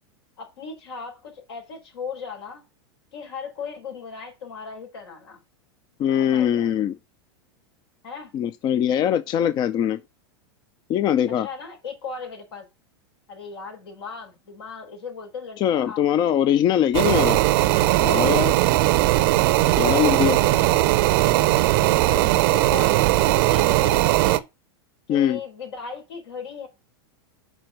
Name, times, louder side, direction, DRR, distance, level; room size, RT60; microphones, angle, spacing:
voice 1, 0.4-2.6 3.1-5.4 6.2-6.7 8.0-8.3 11.4-12.6 13.3-16.3 19.6-20.8 22.1-24.5 25.1-26.7, left 5 dB, 85° left, 4.3 m, -37 dB
voice 2, 6.0-6.9 8.3-10.0 10.9-11.5 15.6-17.4 18.0-18.6 19.8-20.4 25.1-25.4, left 10 dB, 35° left, 0.5 m, -22 dB
sound 1, 16.9-24.4, right 16 dB, 60° right, 0.7 m, -19 dB
6.2 x 4.4 x 6.3 m
supercardioid pair, 125°, 13 cm